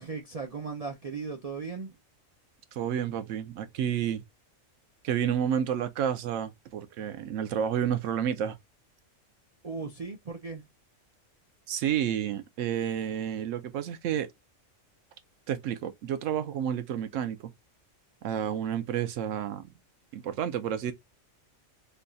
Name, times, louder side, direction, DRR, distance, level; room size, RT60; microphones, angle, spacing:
voice 1, 0.0-2.0 9.6-10.6, right 4 dB, 55° right, 0.4 m, -37 dB
voice 2, 2.7-4.2 5.0-8.6 11.7-14.3 15.5-17.5 18.2-19.7 20.1-20.9, right 9 dB, 75° right, 1.0 m, -30 dB
3.4 x 2.3 x 3.8 m
omnidirectional pair, 1.4 m